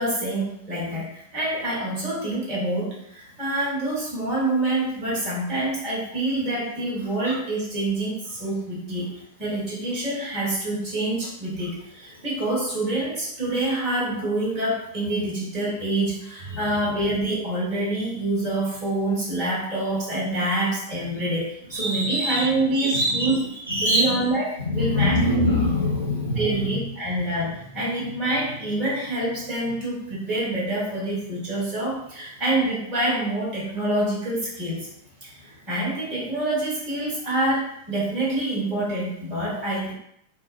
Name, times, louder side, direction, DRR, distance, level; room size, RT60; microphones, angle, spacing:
voice 1, 0.0-23.4 23.8-25.2 26.3-34.9 35.2-39.9, right 1 dB, 35° right, -6 dB, 1.2 m, -26 dB
voice 2, 21.7-22.4 22.8-23.3 23.7-24.2 24.6-26.4, left 1 dB, 90° right, -7 dB, 0.7 m, -23 dB
2.4 x 2.1 x 2.4 m, 0.74 s
figure-of-eight pair, 90°, 0 cm